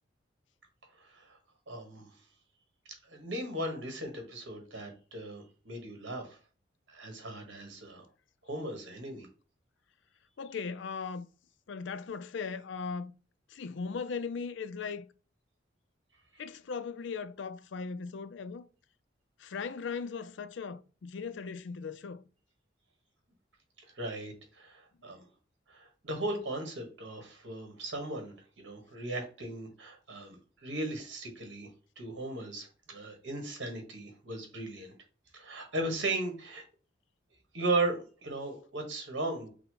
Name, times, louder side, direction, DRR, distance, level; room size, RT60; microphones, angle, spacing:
voice 1, 1.0-1.4 1.7-2.1 3.1-6.4 6.9-8.0 8.4-9.3 16.3-16.4 24.0-25.2 25.7-30.4 30.6-31.7 32.0-34.9 35.3-36.6 37.5-39.5, right 2 dB, 70° right, 1.5 m, -37 dB
voice 2, 10.4-11.3 11.7-13.1 13.5-15.1 16.4-18.7 19.4-22.2, left 5 dB, 75° left, 0.4 m, -38 dB
5.6 x 2.1 x 3.8 m
head